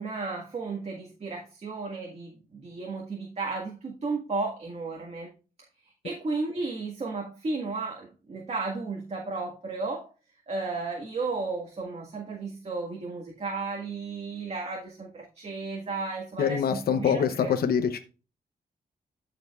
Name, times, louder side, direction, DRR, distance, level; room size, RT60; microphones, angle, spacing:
voice 1, 0.0-5.3 6.0-10.1 10.5-17.5, right 3 dB, 45° right, 1.8 m, -34 dB
voice 2, 16.4-18.0, left 7 dB, 85° left, 0.8 m, -25 dB
13.5 x 5.1 x 2.4 m
cardioid pair, 95°, 15 cm